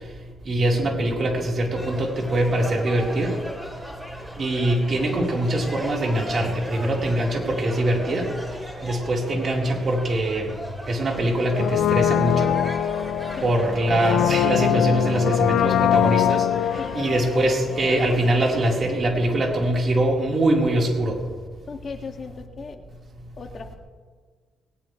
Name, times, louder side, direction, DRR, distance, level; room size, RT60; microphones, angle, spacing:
voice 1, 0.4-3.3 4.4-8.3 8.8-10.5 10.9-12.5 13.4-16.5 16.9-21.1, right 1 dB, 45° right, -1 dB, 4.2 m, -23 dB
sound 1, 1.7-18.8, equal, 5° right, 3.5 m, -38 dB
Brass instrument, 11.5-18.4 18.6-18.7, left 11 dB, 80° left, 0.4 m, -23 dB
voice 2, 16.8-17.5 21.7-22.8 23.4-23.7, left 5 dB, 45° left, 3 dB, 2.2 m, -37 dB
20.0 x 18.5 x 3.3 m, 1.5 s
cardioid pair, 90°, 0 cm